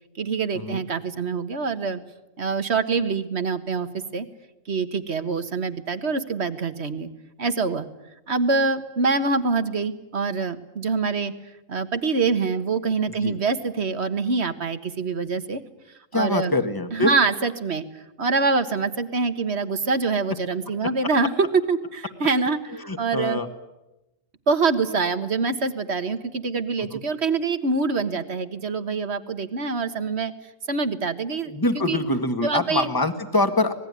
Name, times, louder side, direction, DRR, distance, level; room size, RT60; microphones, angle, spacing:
voice 1, 0.2-2.0 2.4-4.3 4.7-7.1 7.4-7.9 8.3-11.3 11.7-15.6 16.1-16.6 16.9-17.8 18.2-23.4 24.5-30.3 30.7-32.0 32.4-32.9, right 4 dB, 55° right, 11 dB, 1.7 m, -25 dB
voice 2, 16.1-17.1 22.8-23.5 26.9-27.0 31.5-33.7, left 2 dB, 15° left, 8 dB, 1.8 m, -24 dB
25.5 x 20.0 x 9.7 m, 0.97 s
omnidirectional pair, 1.4 m